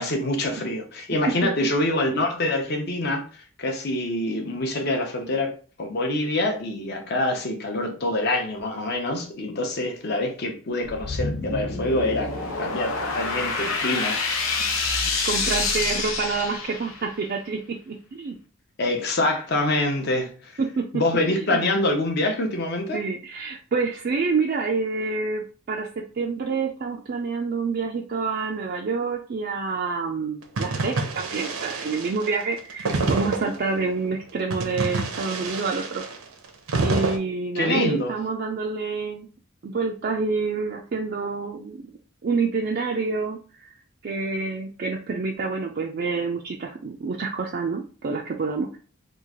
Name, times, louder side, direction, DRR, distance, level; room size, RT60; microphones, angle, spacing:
voice 1, 0.0-14.2 18.8-20.6 20.9-23.0 37.5-38.1, left 1 dB, 50° left, 0.7 m, -25 dB
sound 1, 10.8-17.1, left 4 dB, 80° left, 0.7 m, -27 dB
voice 2, 15.2-18.3 20.6-20.9 21.3-21.6 22.9-36.0 36.8-39.3 39.6-41.8 42.2-43.7 44.0-48.7, right 4 dB, 45° right, 0.3 m, -27 dB
sound 2, 30.6-33.8 34.5-37.2, right 3 dB, 80° right, 0.7 m, -27 dB
3.1 x 2.4 x 3.5 m
head